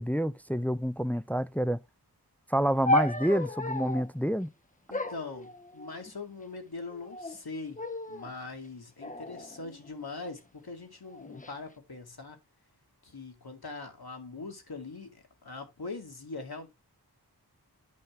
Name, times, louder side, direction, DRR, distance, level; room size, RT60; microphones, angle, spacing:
voice 1, 0.0-1.8 2.5-4.5, equal, 5° left, 0.4 m, -28 dB
sound 1, 2.8-4.1 4.9-6.1 6.9-7.4 7.8-8.3 9.0-10.3 11.1-11.5, left 2 dB, 20° left, 0.8 m, -33 dB
voice 2, 4.9-7.8 8.1-12.4 13.0-16.7, left 3 dB, 70° left, 2.1 m, -42 dB
9.5 x 5.5 x 3.4 m
wide cardioid pair, 45°, 39 cm